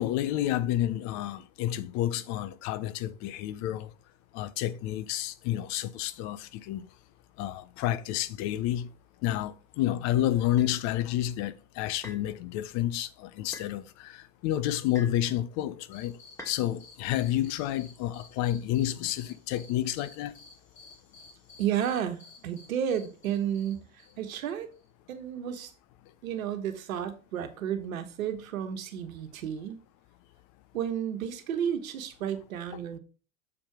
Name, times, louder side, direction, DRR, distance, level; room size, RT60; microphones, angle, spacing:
voice 1, 0.0-3.9 4.3-6.9 7.4-8.9 9.2-16.2 16.5-20.4, left 12 dB, 40° left, 0.6 m, -30 dB
sound 1, 10.6-10.8 12.0-12.3 13.5-13.7 14.9-15.3 16.4-16.6, left 2 dB, 5° left, 2.5 m, -44 dB
sound 2, 15.9-24.9, left 3 dB, 70° left, 3.6 m, -55 dB
voice 2, 21.6-23.9 24.2-24.7 25.1-25.7 26.2-29.8 30.7-33.0, right 9 dB, 75° right, 1.3 m, -32 dB
7.2 x 4.5 x 4.6 m
hypercardioid pair, 95°, 42 cm